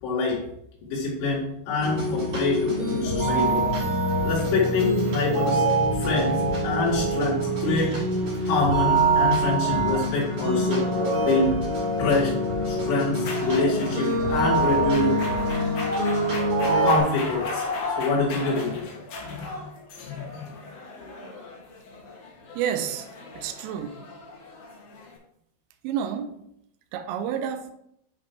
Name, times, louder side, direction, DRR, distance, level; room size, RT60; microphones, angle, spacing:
voice 1, 0.0-0.4 0.8-3.6 4.2-5.6 6.0-8.0 8.4-10.9 11.2-11.5 12.0-12.3 12.7-15.2 16.8-17.6 18.0-18.9 19.2-19.6 20.0-20.5, left 3 dB, 90° left, 4.9 m, -25 dB
sound 1, 1.8-17.0, right 1 dB, 40° right, 2.6 m, -25 dB
sound 2, 13.2-25.2, left 3 dB, 65° left, 2.0 m, -36 dB
voice 2, 22.5-23.1 23.4-24.0 25.8-26.4 26.9-27.7, right 8 dB, 85° right, 3.2 m, -29 dB
11.0 x 4.6 x 2.8 m
omnidirectional pair, 5.8 m